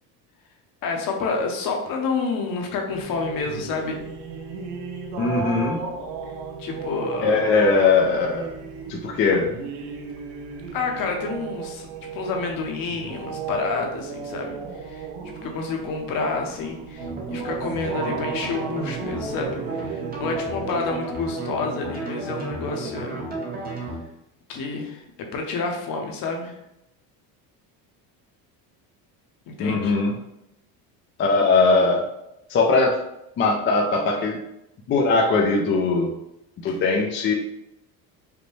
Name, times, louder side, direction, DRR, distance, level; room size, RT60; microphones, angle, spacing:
voice 1, 0.8-4.0 6.6-7.4 10.7-11.9 12.1-14.6 14.9-15.1 15.4-23.2 24.5-26.5 29.5-29.9 36.7-36.8, left 4 dB, 50° left, 2 dB, 0.9 m, -29 dB
sound 1, 2.9-21.4, right 5 dB, 65° right, 0.7 m, -36 dB
voice 2, 5.2-5.8 7.2-8.5 8.9-9.5 29.6-30.2 31.2-32.1 32.5-33.0 33.4-34.4 34.9-36.1 36.6-37.3, left 3 dB, 30° left, -1 dB, 0.4 m, -20 dB
sound 2, 17.0-24.0, right 2 dB, 20° right, 0.9 m, -32 dB
5.1 x 2.1 x 3.1 m, 0.83 s
cardioid pair, 130°, 42 cm